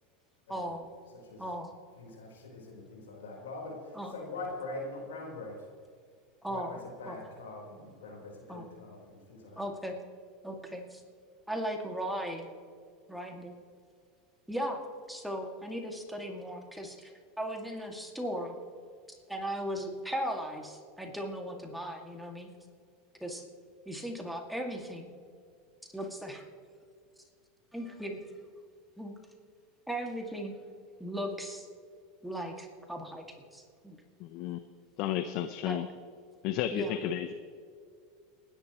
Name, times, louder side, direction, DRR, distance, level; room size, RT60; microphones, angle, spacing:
voice 1, 0.5-0.9 1.4-1.7 3.9-4.1 6.4-6.8 7.1-7.2 8.5-8.7 9.6-9.9 10.4-11.0 11.5-12.5 13.1-13.6 14.5-14.8 15.1-17.1 17.4-18.5 19.1-22.5 23.2-23.4 23.9-25.1 25.9-26.4 27.7-28.2 29.0-29.1 29.9-30.5 31.0-31.7 32.2-34.0 35.7-35.8 36.7-37.0, equal, ahead, 2 dB, 2.1 m, -37 dB
voice 2, 2.0-5.6 6.5-9.7, left 2 dB, 85° left, -2 dB, 4.2 m, -43 dB
voice 3, 34.2-34.6 35.0-35.9 36.4-37.3, left 12 dB, 55° left, 10 dB, 0.7 m, -32 dB
29.5 x 10.5 x 3.1 m, 2.2 s
hypercardioid pair, 95°, 0 cm